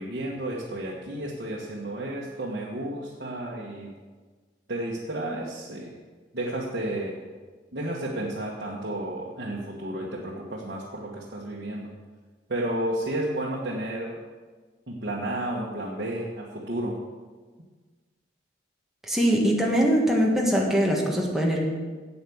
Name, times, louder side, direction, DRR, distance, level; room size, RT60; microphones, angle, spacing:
voice 1, 0.0-3.9 4.7-6.0 6.3-7.2 7.7-11.9 12.5-14.2 14.9-17.0, right 1 dB, 55° right, -5 dB, 1.4 m, -32 dB
voice 2, 19.0-21.6, equal, ahead, -2 dB, 1.6 m, -22 dB
8.4 x 8.2 x 7.1 m, 1.4 s
head